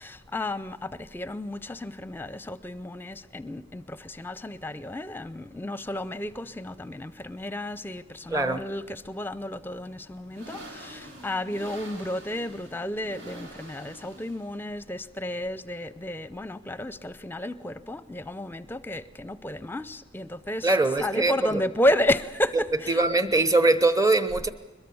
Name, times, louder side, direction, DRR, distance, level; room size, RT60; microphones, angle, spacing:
voice 1, 0.0-20.7 21.0-23.0, left 1 dB, 10° left, 15 dB, 0.7 m, -32 dB
sound 1, 4.5-22.5, right 1 dB, 85° right, 4.2 m, -50 dB
voice 2, 8.3-8.6 20.6-21.6 22.9-24.5, right 2 dB, 20° right, 11 dB, 1.0 m, -22 dB
22.5 x 21.5 x 7.1 m, 1.2 s
head